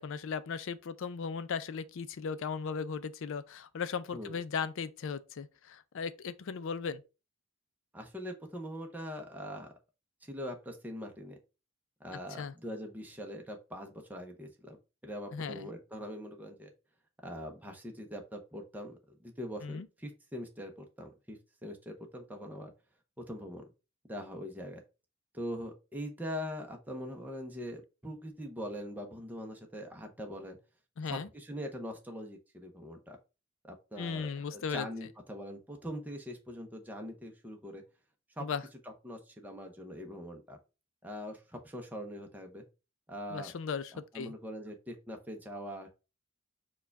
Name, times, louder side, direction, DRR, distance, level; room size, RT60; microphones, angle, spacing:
voice 1, 0.0-7.0 12.4-12.5 15.3-15.7 19.6-19.9 31.0-31.3 34.0-34.9 38.4-38.6 43.3-44.3, left 6 dB, 65° left, 0.4 m, -37 dB
voice 2, 7.9-9.7 10.2-11.4 12.0-14.8 15.0-16.7 17.2-22.7 23.2-23.6 24.1-24.8 25.3-30.6 31.0-33.2 33.6-37.8 38.4-38.5 38.8-40.6 41.0-42.6 43.1-43.5 43.9-45.9, equal, 10° right, 0.6 m, -42 dB
4.6 x 2.3 x 4.6 m
head